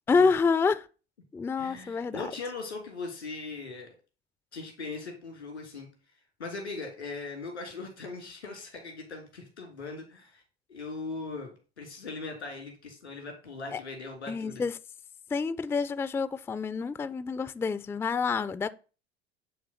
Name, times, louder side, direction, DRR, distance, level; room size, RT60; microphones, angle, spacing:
voice 1, 0.1-0.9 1.3-2.3 13.7-13.8 14.3-14.7 15.3-18.7, left 4 dB, 10° left, 0.4 m, -27 dB
voice 2, 1.6-3.9 4.5-5.9 6.4-10.4 10.7-14.6, left 3 dB, 90° left, 2.9 m, -39 dB
9.6 x 3.5 x 5.7 m
figure-of-eight pair, 75°, 33 cm